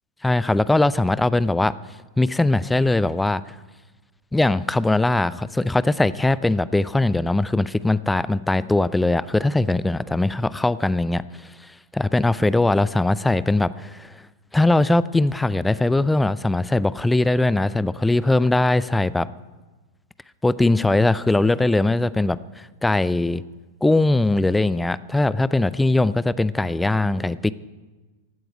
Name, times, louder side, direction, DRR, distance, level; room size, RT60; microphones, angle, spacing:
voice 1, 0.2-1.8 2.2-3.5 4.3-11.2 11.9-14.1 14.5-19.3 20.4-22.4 22.8-23.4 23.8-27.5, left 2 dB, 5° left, 18 dB, 0.4 m, -20 dB
16.0 x 7.9 x 10.0 m, 1.2 s
figure-of-eight pair, 90°, 0 cm